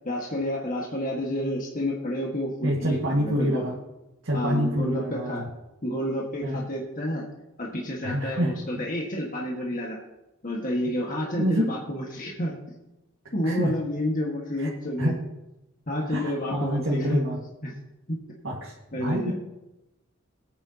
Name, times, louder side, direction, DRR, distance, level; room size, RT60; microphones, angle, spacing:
voice 1, 0.0-3.6 4.3-5.4 5.8-7.2 7.6-10.0 10.4-12.5 13.3-15.1 15.9-17.2 17.6-17.7 18.1-18.2 18.9-19.3, left 1 dB, 45° left, -3 dB, 1.7 m, -29 dB
voice 2, 2.6-3.8 4.2-5.5 6.4-6.6 8.0-8.8 11.4-11.8 13.2-13.7 14.6-14.7 15.0-15.2 16.1-17.4 18.4-19.3, equal, 80° right, -3 dB, 1.9 m, -27 dB
21.5 x 9.0 x 2.9 m, 0.95 s
head